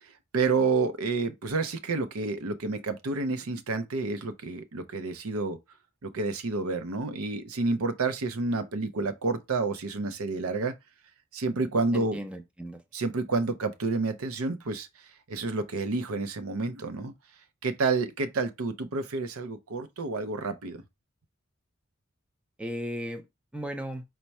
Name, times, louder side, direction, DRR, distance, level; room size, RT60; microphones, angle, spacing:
voice 1, 0.0-5.6 6.0-10.7 11.3-12.2 12.9-14.9 15.3-17.1 17.6-20.8, right 3 dB, 90° right, 0.6 m, -29 dB
voice 2, 11.9-12.8 22.6-23.2 23.5-24.0, equal, 5° right, 0.5 m, -36 dB
4.6 x 2.2 x 4.1 m
head